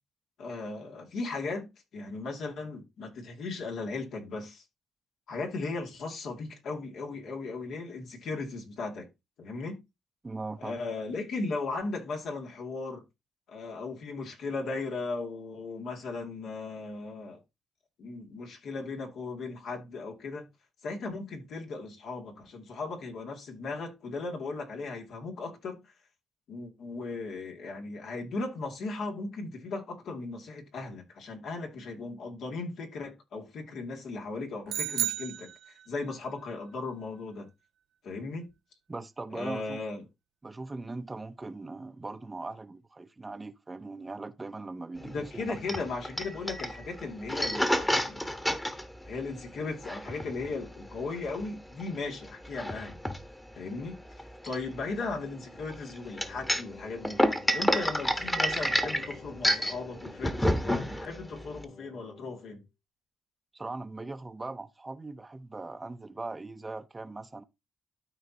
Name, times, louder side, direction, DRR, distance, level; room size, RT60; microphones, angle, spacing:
voice 1, 0.4-4.6 5.3-9.1 9.4-9.8 10.6-13.0 13.5-17.4 18.0-20.5 20.8-25.8 26.5-37.5 38.0-38.5 39.3-40.0 45.0-48.2 49.0-53.0 53.5-54.0 54.4-57.2 57.5-62.6, left 3 dB, 70° left, 2.4 m, -37 dB
voice 2, 10.2-10.8 38.9-39.8 40.4-45.6 63.5-67.4, right 3 dB, 20° right, 0.7 m, -40 dB
sound 1, 34.7-36.1, right 11 dB, 75° right, 0.4 m, -33 dB
sound 2, 45.0-61.6, equal, 10° left, 1.2 m, -30 dB
Wind instrument woodwind instrument, 56.0-62.6, left 3 dB, 35° left, 2.7 m, -51 dB
13.0 x 4.5 x 2.9 m
cardioid pair, 90°, 0 cm